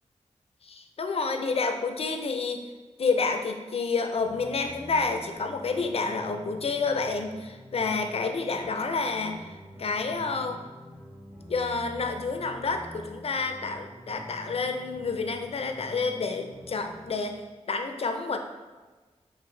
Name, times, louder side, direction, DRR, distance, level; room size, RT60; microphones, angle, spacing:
voice 1, 0.6-2.6 3.0-10.6 11.5-18.4, left 4 dB, 55° left, 6 dB, 0.4 m, -29 dB
sound 1, 4.1-17.1, equal, 20° right, 1.3 m, -47 dB
5.6 x 2.5 x 3.1 m, 1.3 s
wide cardioid pair, 110°, 12 cm